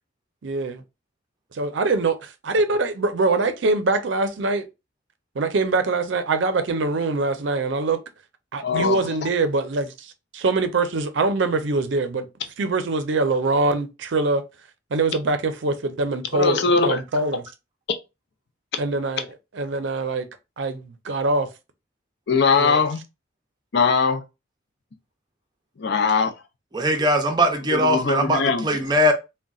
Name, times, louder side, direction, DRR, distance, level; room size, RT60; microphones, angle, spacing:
voice 1, 0.4-0.8 1.5-4.6 5.4-8.0 8.5-12.3 12.6-14.4 14.9-17.4 18.8-19.3 19.5-20.3 20.6-21.5 22.5-22.8, right 3 dB, 70° right, 0.5 m, -23 dB
voice 2, 8.6-9.0 16.3-17.0 22.3-23.0 23.7-24.2 25.8-26.3 27.7-28.7, left 5 dB, 60° left, 0.5 m, -20 dB
voice 3, 26.7-29.1, equal, 20° right, 0.5 m, -20 dB
3.7 x 2.2 x 2.3 m
head